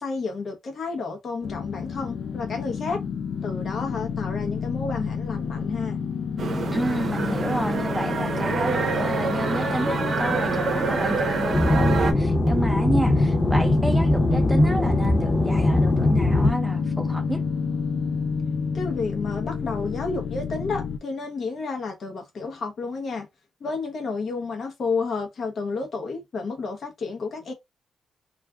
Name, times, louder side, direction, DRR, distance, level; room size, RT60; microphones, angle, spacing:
voice 1, 0.0-3.0 3.4-6.0 18.7-23.3 23.6-27.5, left 4 dB, 60° left, 0.8 m, -31 dB
sound 1, 1.4-21.0, left 6 dB, 80° left, 0.4 m, -30 dB
sound 2, 6.4-12.1, right 4 dB, 65° right, 0.6 m, -26 dB
voice 2, 6.7-17.4, right 1 dB, 5° right, 0.7 m, -30 dB
sound 3, 11.5-16.5, left 1 dB, 25° left, 0.9 m, -21 dB
2.4 x 2.3 x 3.4 m
cardioid pair, 70°, 0 cm